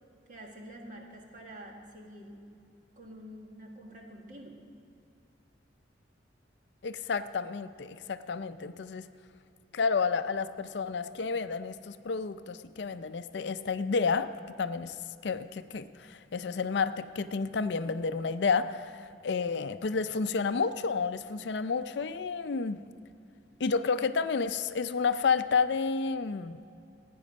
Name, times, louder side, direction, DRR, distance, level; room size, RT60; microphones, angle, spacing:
voice 1, 0.3-2.4 2.9-4.6, equal, 45° right, 0 dB, 1.7 m, -47 dB
voice 2, 6.8-9.1 9.7-14.3 14.6-15.0 15.2-22.8 23.6-26.6, left 5 dB, 65° left, 12 dB, 0.5 m, -30 dB
16.0 x 9.5 x 5.3 m, 2.6 s
head